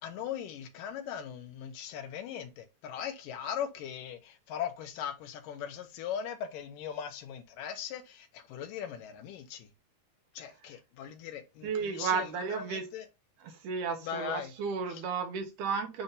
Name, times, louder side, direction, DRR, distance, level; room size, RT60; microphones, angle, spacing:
voice 1, 0.0-9.7 10.3-13.1 14.0-14.5 14.9-15.0, left 8 dB, 80° left, 2.7 m, -39 dB
voice 2, 11.6-12.9 13.6-16.0, right 5 dB, 70° right, 2.6 m, -33 dB
7.7 x 2.9 x 5.2 m
omnidirectional pair, 3.9 m